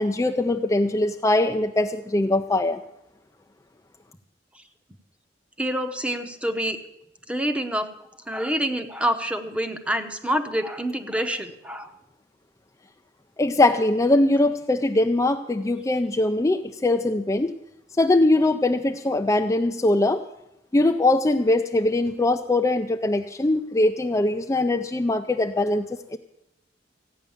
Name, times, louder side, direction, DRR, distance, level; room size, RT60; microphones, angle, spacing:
voice 1, 0.0-2.8 13.4-17.5 18.0-20.2 20.7-26.2, left 2 dB, 20° left, 6 dB, 0.4 m, -22 dB
voice 2, 5.6-6.8 7.3-7.9 8.3-11.9, equal, 5° right, 8 dB, 0.9 m, -27 dB
14.5 x 9.5 x 7.1 m, 0.86 s
head